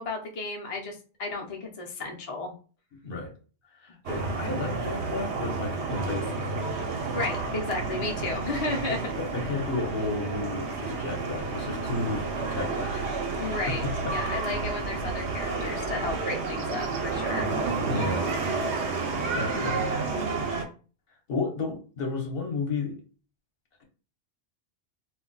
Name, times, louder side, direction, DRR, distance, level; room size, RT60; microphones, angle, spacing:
voice 1, 0.0-2.5 7.1-9.0 13.4-13.9 14.1-17.5, left 3 dB, 40° left, 0 dB, 0.5 m, -33 dB
voice 2, 3.8-6.5 8.9-13.2 13.7-14.2 17.9-18.3 19.4-20.3 21.3-23.0, left 3 dB, 60° left, 1 dB, 0.9 m, -33 dB
sound 1, 4.1-20.6, right 3 dB, 80° right, 0.9 m, -30 dB
2.3 x 2.1 x 3.8 m, 0.37 s
omnidirectional pair, 1.1 m